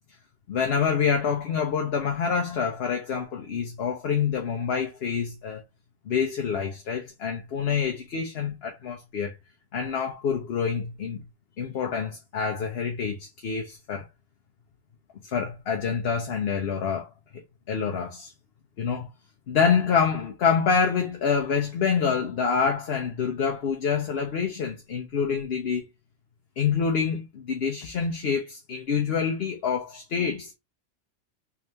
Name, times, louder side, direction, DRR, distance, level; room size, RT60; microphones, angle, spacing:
voice 1, 0.5-5.6 6.1-9.3 9.7-11.2 11.6-14.1 15.2-17.4 17.7-18.3 18.8-19.1 19.5-25.9 26.6-30.5, left 6 dB, 60° left, 0.9 m, -27 dB
3.5 x 3.3 x 2.8 m
omnidirectional pair, 1.2 m